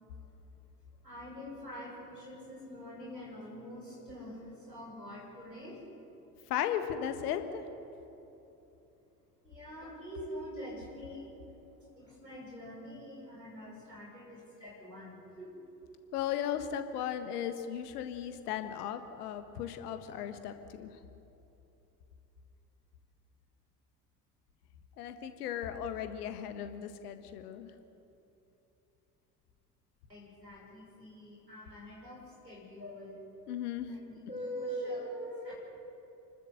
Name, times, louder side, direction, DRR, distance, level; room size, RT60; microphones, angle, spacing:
voice 1, 1.0-5.8 9.4-11.3 11.7-15.6 30.1-33.2 33.9-35.5, equal, 90° right, -4 dB, 5.8 m, -44 dB
voice 2, 6.5-7.6 16.1-20.9 25.0-27.7 33.5-34.0, left 9 dB, 70° left, 9 dB, 1.6 m, -36 dB
29.0 x 13.0 x 8.0 m, 3.0 s
figure-of-eight pair, 55°, 48 cm